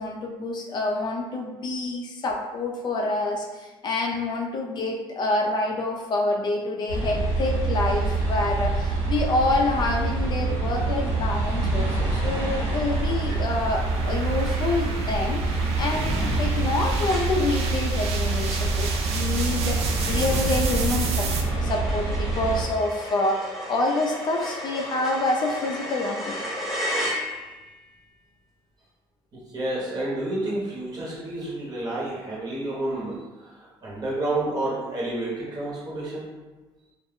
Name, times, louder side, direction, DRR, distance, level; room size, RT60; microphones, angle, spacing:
voice 1, 0.0-26.4, left 2 dB, 40° left, 1 dB, 0.3 m, -27 dB
sound 1, 6.9-22.6, right 3 dB, 55° right, 1.2 m, -26 dB
sound 2, 9.3-21.4, right 5 dB, 70° right, 0.4 m, -35 dB
sound 3, 13.3-13.7 14.1-14.2 14.5-27.7, equal, 5° right, 0.7 m, -36 dB
voice 2, 29.3-36.3, right 2 dB, 35° right, -5 dB, 1.0 m, -30 dB
2.3 x 2.0 x 3.5 m, 1.2 s
cardioid pair, 120°, 11 cm